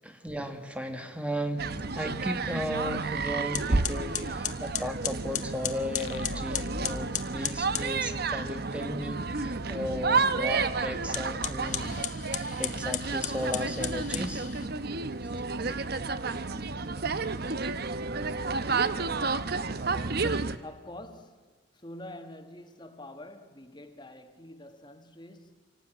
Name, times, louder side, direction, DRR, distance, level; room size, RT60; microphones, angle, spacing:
voice 1, 0.2-1.6 1.9-11.8 12.3-14.5, equal, 5° right, 1.4 m, -35 dB
sound 1, 1.6-20.6, right 4 dB, 50° right, 0.9 m, -31 dB
sound 2, 3.5-7.9 11.0-14.7, left 10 dB, 40° left, 1.2 m, -35 dB
sound 3, 5.9-8.6, left 4 dB, 65° left, 0.8 m, -43 dB
voice 2, 20.6-25.7, left 1 dB, 20° left, 1.5 m, -46 dB
27.5 x 18.0 x 9.0 m
head